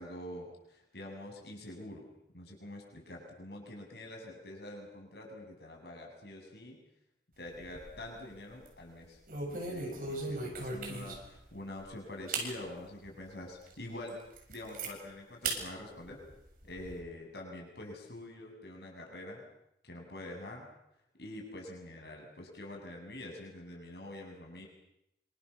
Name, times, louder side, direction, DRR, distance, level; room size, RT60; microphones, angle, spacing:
voice 1, 0.0-2.0 2.3-6.8 7.4-9.2 9.4-14.2 14.5-16.2 16.6-19.4 19.8-20.7 21.2-24.7, left 1 dB, 65° left, 0 dB, 7.9 m, -45 dB
sound 1, 7.4-8.2 8.5-8.7 9.3-11.4 11.8-11.9 12.3-12.5 13.0-13.1 13.7-13.8 14.1-14.9 15.4-15.6 16.0-16.9, right 3 dB, 50° right, 7.2 m, -38 dB
28.0 x 26.0 x 7.3 m, 0.82 s
head